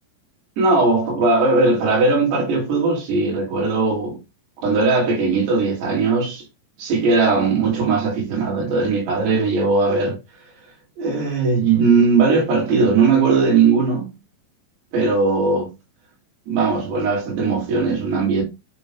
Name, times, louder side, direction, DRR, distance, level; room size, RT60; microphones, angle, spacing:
voice 1, 0.6-4.2 4.6-6.5 6.8-10.2 11.0-14.1 14.9-15.7 16.5-18.4, right 4 dB, 80° right, 4.7 m, -19 dB
10.5 x 4.6 x 2.4 m
omnidirectional pair, 4.6 m